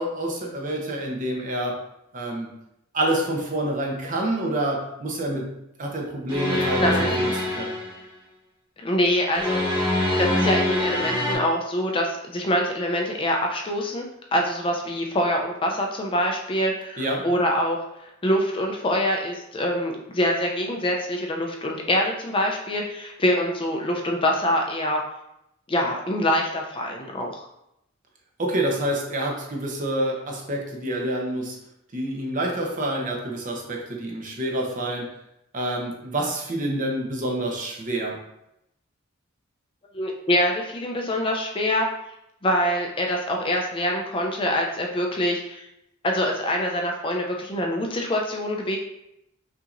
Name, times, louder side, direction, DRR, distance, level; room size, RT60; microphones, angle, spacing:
voice 1, 0.0-1.8 2.1-2.5 2.9-5.5 5.8-7.8 17.0-17.3 28.4-31.6 31.9-35.1 35.5-38.2, right 1 dB, 40° right, 0 dB, 0.8 m, -27 dB
sound 1, 6.3-8.0 9.3-11.4, left 1 dB, 25° right, 1.5 m, -24 dB
voice 2, 6.5-7.1 8.8-17.8 18.0-25.0 25.7-27.5 39.9-41.9 42.4-45.7 46.0-48.8, equal, 25° left, 1 dB, 0.5 m, -25 dB
5.7 x 2.8 x 2.5 m, 0.82 s
head